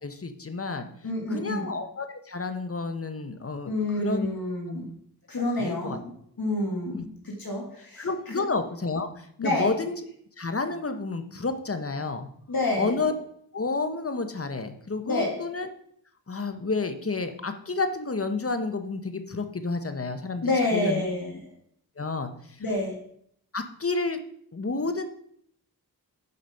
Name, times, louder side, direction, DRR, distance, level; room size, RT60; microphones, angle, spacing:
voice 1, 0.0-0.9 1.3-4.3 5.6-6.0 6.9-7.0 8.0-9.9 10.4-12.3 12.8-13.1 13.5-15.7 16.3-21.0 22.0-22.6 23.5-24.2 24.5-25.1, left 3 dB, 35° left, 8 dB, 1.0 m, -30 dB
voice 2, 1.0-1.7 3.7-4.9 5.3-8.3 9.4-9.7 12.5-13.0 15.0-15.4 20.4-21.4 22.6-23.0, left 2 dB, 65° left, -1 dB, 1.9 m, -28 dB
6.6 x 5.0 x 5.6 m, 0.66 s
cardioid pair, 45°, 38 cm